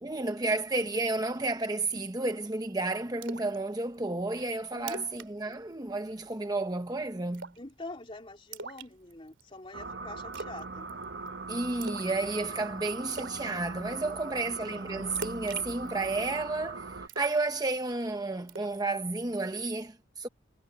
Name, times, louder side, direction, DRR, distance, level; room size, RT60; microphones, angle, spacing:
voice 1, 0.0-7.5 11.5-20.3, right 2 dB, 20° right, 0.9 m, -32 dB
Splash splatter, 3.2-3.6 3.9-4.0 4.4-4.5 4.8-5.3 5.5-5.7 6.1-6.4 7.3-7.7 8.5-9.4 10.3-10.6 10.9-11.3 11.8-12.2 12.5-12.6 13.1-13.4 15.1-16.4 17.1-18.0 18.5-18.8, right 4 dB, 85° right, 2.6 m, -42 dB
voice 2, 4.7-5.0 7.6-10.9 14.0-14.4, left 2 dB, 30° left, 3.4 m, -45 dB
sound 1, 9.7-17.1, right 3 dB, 60° right, 0.8 m, -40 dB
head